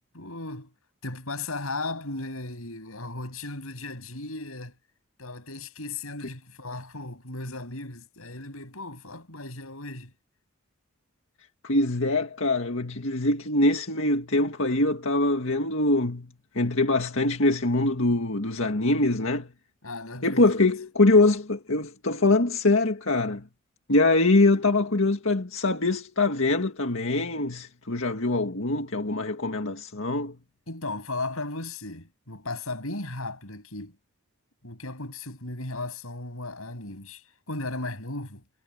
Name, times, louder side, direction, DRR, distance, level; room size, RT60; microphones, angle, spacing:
voice 1, 0.1-0.7 1.0-4.8 5.2-10.1 19.8-20.7 30.7-34.0 34.6-38.4, left 2 dB, 85° left, 7.6 m, -36 dB
voice 2, 11.6-19.5 20.2-23.5 23.9-30.4, left 2 dB, 70° left, 2.0 m, -23 dB
head